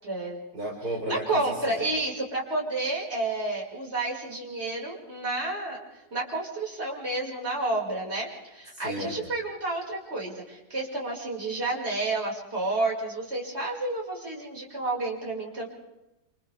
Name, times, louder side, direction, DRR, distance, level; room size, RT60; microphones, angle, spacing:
voice 1, 0.0-0.4 1.1-15.7, right 2 dB, 35° right, -3 dB, 5.9 m, -30 dB
voice 2, 0.5-1.8 8.7-9.3, right 1 dB, 55° right, -2 dB, 5.1 m, -34 dB
29.0 x 28.0 x 3.5 m, 0.96 s
omnidirectional pair, 1.9 m